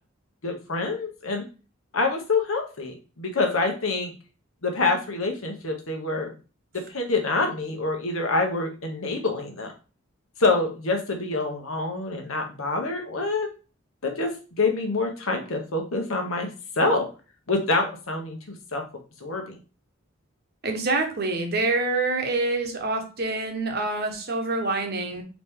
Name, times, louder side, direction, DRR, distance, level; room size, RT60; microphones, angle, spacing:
voice 1, 0.4-1.4 1.9-4.1 4.6-6.3 6.9-9.7 10.4-13.5 14.0-14.3 14.6-16.5 16.8-17.1 17.5-18.4 18.7-18.8 19.2-19.6, left 3 dB, 85° left, 3 dB, 1.1 m, -26 dB
voice 2, 20.6-25.2, right 3 dB, 50° right, 4 dB, 0.9 m, -26 dB
4.1 x 3.0 x 3.6 m, 0.34 s
head